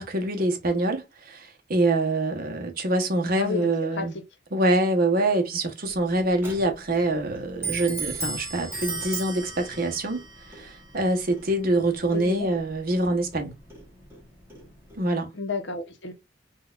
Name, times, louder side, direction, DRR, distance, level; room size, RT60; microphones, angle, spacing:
voice 1, 0.0-4.1 4.5-13.5 15.0-15.3, right 2 dB, 55° right, 0.9 m, -25 dB
voice 2, 3.4-4.1 12.1-12.5 15.3-16.1, left 4 dB, 70° left, 0.8 m, -31 dB
Clock, 5.8-15.1, right 3 dB, 15° right, 1.1 m, -38 dB
3.8 x 2.3 x 2.4 m
head